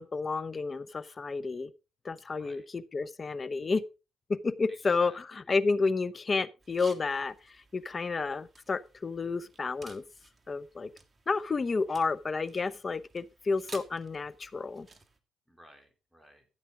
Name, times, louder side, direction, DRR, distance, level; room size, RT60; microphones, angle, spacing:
voice 1, 0.0-1.7 2.0-3.8 4.3-10.0 10.5-10.9 11.3-14.9, left 4 dB, 35° left, 0.8 m, -31 dB
voice 2, 2.3-2.7 4.7-5.2 11.9-12.2 15.5-16.5, equal, ahead, 3.6 m, -57 dB
sound 1, 6.6-15.2, right 3 dB, 30° right, 1.7 m, -55 dB
14.0 x 8.2 x 3.7 m
cardioid pair, 90°, 0 cm